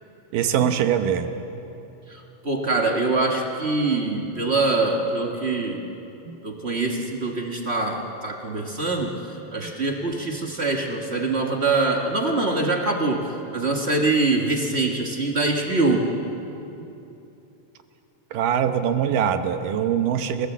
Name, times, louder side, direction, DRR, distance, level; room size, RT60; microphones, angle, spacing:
voice 1, 0.3-1.3 6.3-6.4 18.3-20.5, right 9 dB, 80° right, 8 dB, 2.6 m, -22 dB
voice 2, 2.1-5.8 6.4-9.2 9.5-16.1, right 3 dB, 40° right, 1 dB, 0.9 m, -24 dB
29.5 x 17.0 x 7.4 m, 2.9 s
omnidirectional pair, 3.9 m